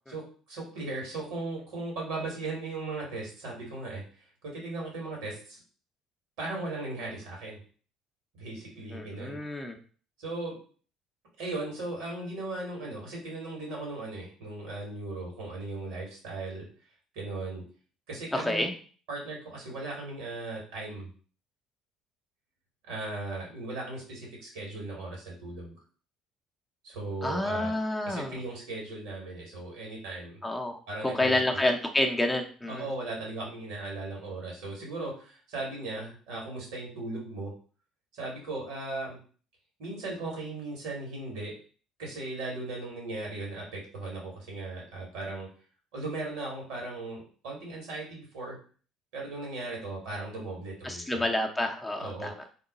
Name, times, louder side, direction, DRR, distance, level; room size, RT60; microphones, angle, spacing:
voice 1, 0.1-4.0 4.4-5.6 6.4-7.6 8.3-9.4 10.2-10.6 11.4-16.7 17.1-17.6 18.1-18.7 19.1-21.1 22.9-25.7 26.8-27.7 28.0-30.4 30.9-31.6 32.7-37.5 38.1-39.2 39.8-41.6 42.0-45.5 45.9-48.6 49.1-51.2 52.0-52.3, right 2 dB, 75° right, -2 dB, 1.7 m, -37 dB
voice 2, 8.9-9.8 18.3-18.7 27.2-28.3 30.4-32.9 50.8-52.3, left 1 dB, 10° left, 2 dB, 0.7 m, -29 dB
3.0 x 2.2 x 4.0 m, 0.40 s
hypercardioid pair, 60°, 0 cm